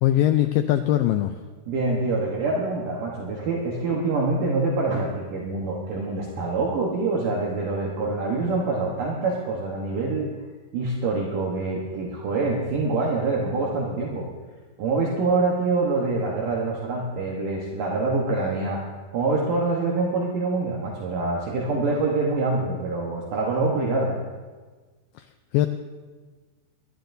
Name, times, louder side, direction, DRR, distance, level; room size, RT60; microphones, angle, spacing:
voice 1, 0.0-1.3 25.5-25.7, left 13 dB, 85° left, 8 dB, 2.0 m, -20 dB
voice 2, 1.7-10.3 10.7-14.3 14.8-18.8 19.1-24.2, right 3 dB, 65° right, -2 dB, 2.6 m, -25 dB
22.5 x 11.5 x 2.7 m, 1.4 s
omnidirectional pair, 4.4 m